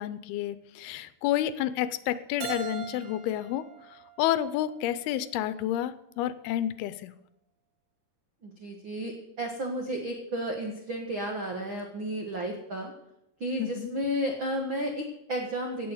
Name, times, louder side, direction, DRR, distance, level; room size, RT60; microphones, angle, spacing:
voice 1, 0.0-3.7 4.2-7.1 13.6-13.9, left 12 dB, 80° left, 14 dB, 2.5 m, -30 dB
Keyboard (musical), 2.4-5.2, right 9 dB, 85° right, 3.5 m, -42 dB
voice 2, 8.4-12.9 13.4-15.9, equal, 65° right, 2 dB, 1.2 m, -32 dB
16.5 x 6.9 x 7.8 m, 0.85 s
omnidirectional pair, 4.6 m